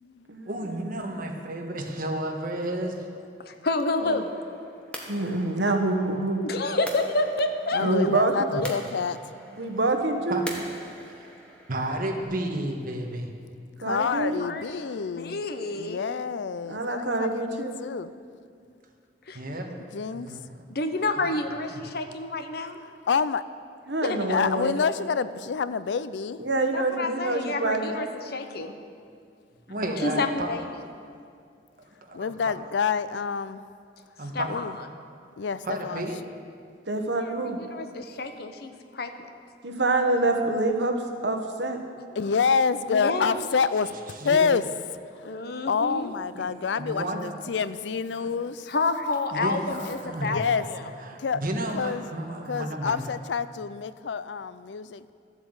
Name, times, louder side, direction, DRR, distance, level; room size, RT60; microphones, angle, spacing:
voice 1, 0.4-3.1 8.5-8.6 10.3-10.6 11.2-11.3 11.7-13.3 19.3-19.8 20.1-20.4 21.2-21.3 29.7-30.5 31.8-32.3 34.2-34.6 35.6-36.2 44.2-44.5 46.3-47.3 49.3-50.4 51.1-53.0, right 1 dB, 55° right, 2 dB, 1.4 m, -32 dB
voice 2, 3.4-4.3 6.4-7.9 8.6-8.7 14.4-16.0 19.3-19.4 20.7-22.8 24.0-24.4 24.6-24.7 26.7-28.7 30.0-30.6 34.3-34.7 37.2-39.1 42.9-43.5 45.2-46.1 48.7-50.4 50.7-50.8, left 2 dB, 60° left, 7 dB, 0.9 m, -29 dB
sound 1, 3.9-12.2, equal, 5° left, 1.5 m, -44 dB
voice 3, 5.1-6.4 7.8-8.3 9.6-10.4 13.8-14.4 16.7-17.8 23.9-24.7 26.4-28.0 29.9-30.2 36.9-37.6 39.6-41.8, right 2 dB, 80° right, 4 dB, 1.3 m, -26 dB
voice 4, 7.7-9.3 13.8-15.5 15.7-18.1 19.8-20.4 23.1-23.4 24.3-26.4 32.1-33.6 34.5-34.8 35.4-36.1 42.2-44.6 45.1-48.7 50.2-51.4 51.7-52.0 52.5-55.1, left 5 dB, 90° left, 15 dB, 0.5 m, -28 dB
13.0 x 8.0 x 8.0 m, 2.3 s
head